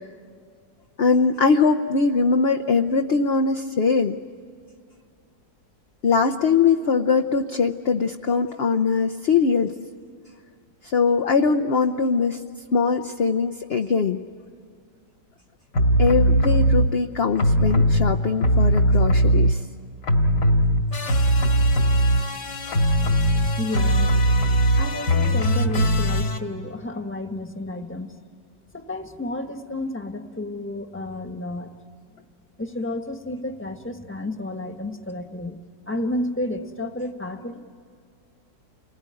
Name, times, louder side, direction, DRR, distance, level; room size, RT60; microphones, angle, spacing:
voice 1, 1.0-4.2 6.0-9.7 10.8-12.4 12.7-14.2 16.0-19.6, left 5 dB, 50° left, 4 dB, 0.7 m, -21 dB
sound 1, 15.7-16.9 17.4-19.8 20.0-26.4, right 1 dB, 70° left, 2.5 m, -19 dB
voice 2, 23.6-24.2 24.8-28.2 28.7-31.7 32.6-35.6 35.9-37.6, left 1 dB, 10° left, 6 dB, 1.3 m, -31 dB
29.0 x 20.0 x 9.8 m, 2.3 s
omnidirectional pair, 1.9 m